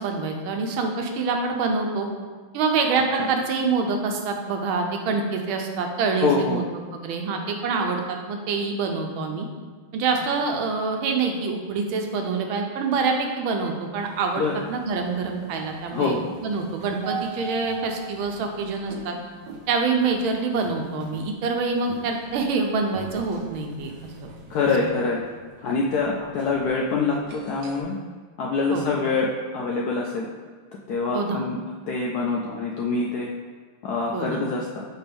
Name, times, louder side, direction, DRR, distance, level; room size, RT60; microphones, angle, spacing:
voice 1, 0.0-2.1 2.5-6.6 6.9-9.5 9.9-19.1 19.7-23.9 24.2-24.3 24.8-24.9 28.7-28.8 31.1-31.4 34.1-34.4, right 4 dB, 85° right, 3 dB, 1.6 m, -26 dB
voice 2, 6.2-6.6 14.4-14.5 15.9-16.3 24.5-25.2 25.6-28.0 28.4-29.3 29.5-30.3 30.9-31.6 31.9-33.3 33.8-34.8, left 4 dB, 75° left, -2 dB, 0.9 m, -25 dB
sound 1, 14.0-27.8, right 5 dB, 70° right, 1.2 m, -42 dB
6.7 x 4.3 x 3.4 m, 1.5 s
omnidirectional pair, 2.2 m